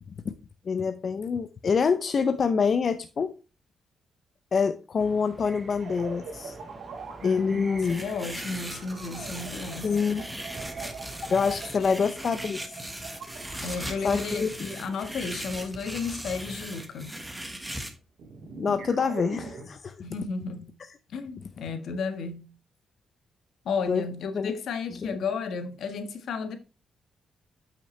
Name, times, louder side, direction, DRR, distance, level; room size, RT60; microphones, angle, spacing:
voice 1, 0.6-3.3 4.5-6.6 7.2-8.0 9.8-10.2 11.3-12.8 14.0-14.7 18.6-20.0 23.9-24.1 24.3-24.5 24.9-25.2, left 5 dB, 45° left, 0.5 m, -26 dB
sound 1, 5.0-11.9, right 3 dB, 25° right, 0.7 m, -47 dB
sound 2, 5.8-17.2 18.2-19.6, right 4 dB, 70° right, 2.2 m, -43 dB
voice 2, 7.2-10.0 11.8-12.0 13.6-17.1 20.0-20.7 21.1-22.5 23.6-26.6, left 5 dB, 75° left, 1.4 m, -33 dB
sound 3, 7.8-17.9, right 1 dB, 5° right, 1.3 m, -39 dB
8.7 x 5.9 x 3.2 m
cardioid pair, 115°, 0 cm